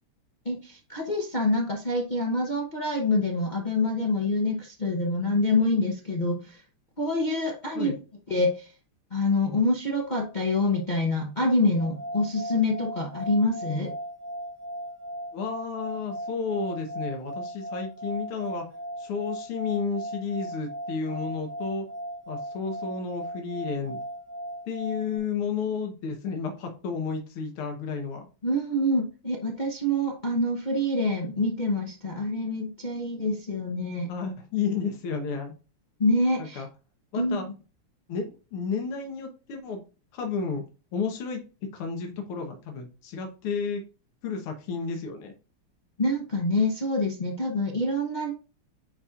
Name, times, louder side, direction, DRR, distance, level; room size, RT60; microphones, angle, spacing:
voice 1, 0.4-6.6 7.0-8.0 8.3-8.7 9.1-13.9 28.4-34.1 36.0-36.6 37.2-37.4 46.0-48.3, left 2 dB, 50° left, 0 dB, 0.5 m, -26 dB
sound 1, 11.8-25.2, equal, 80° right, 3.0 m, -37 dB
voice 2, 15.3-18.6 19.0-21.9 22.3-24.0 24.7-28.3 34.1-35.5 36.4-36.7 37.1-37.5 38.1-39.8 40.1-40.6 40.9-43.8 44.2-45.3, left 5 dB, 80° left, 2 dB, 2.0 m, -32 dB
9.5 x 4.2 x 2.4 m, 0.33 s
omnidirectional pair, 2.4 m